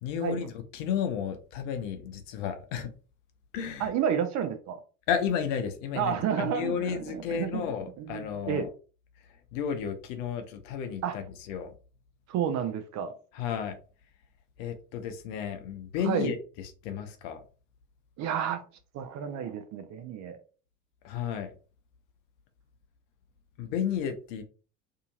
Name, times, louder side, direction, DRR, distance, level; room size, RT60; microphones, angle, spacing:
voice 1, 0.0-2.9 3.5-3.9 5.1-8.7 9.5-11.7 13.3-13.8 14.6-16.4 16.8-17.4 21.0-21.5 23.6-24.4, left 8 dB, 55° left, 7 dB, 0.7 m, -32 dB
voice 2, 3.8-4.8 5.9-7.6 8.0-8.7 11.0-11.2 12.3-13.1 16.0-16.3 18.2-18.6 18.9-20.4, right 8 dB, 40° right, 8 dB, 0.6 m, -30 dB
2.7 x 2.5 x 2.7 m, 0.36 s
figure-of-eight pair, 70°, 43 cm